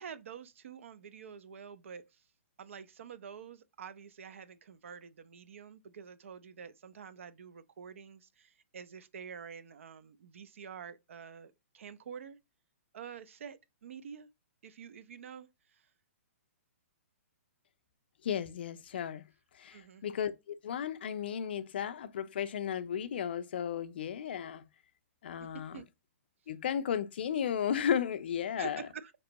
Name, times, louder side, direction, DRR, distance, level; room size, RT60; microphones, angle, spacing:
voice 1, 0.0-2.2 2.6-12.4 12.9-14.3 14.6-15.9 19.7-20.0 25.4-25.9 28.6-29.1, right 7 dB, 60° right, 0.5 m, -48 dB
voice 2, 18.2-19.2 19.6-24.6 25.2-25.8 26.5-28.8, left 8 dB, 45° left, 0.4 m, -34 dB
4.3 x 2.9 x 2.8 m
hypercardioid pair, 175°, 8 cm